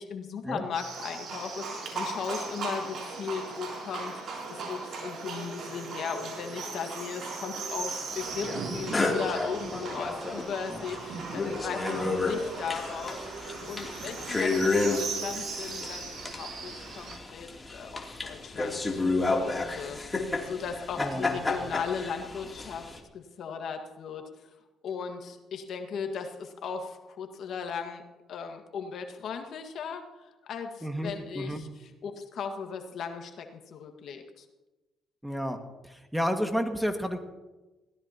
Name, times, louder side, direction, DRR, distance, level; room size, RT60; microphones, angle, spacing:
voice 1, 0.0-13.2 13.7-22.9 23.1-24.2 24.8-28.0 28.3-34.4, left 6 dB, 65° left, 5 dB, 1.7 m, -37 dB
Livestock farm animals working animals, 0.7-17.2, right 4 dB, 65° right, 6.5 m, -38 dB
sound 1, 8.4-8.6 8.9-10.6 10.9-11.0 11.2-23.0, left 3 dB, 25° left, 2.9 m, -31 dB
voice 2, 21.0-21.4 30.8-31.6 35.2-35.6 35.8-37.2, equal, 5° right, 5 dB, 1.9 m, -31 dB
21.0 x 16.5 x 2.9 m, 1.1 s
supercardioid pair, 70°, 0 cm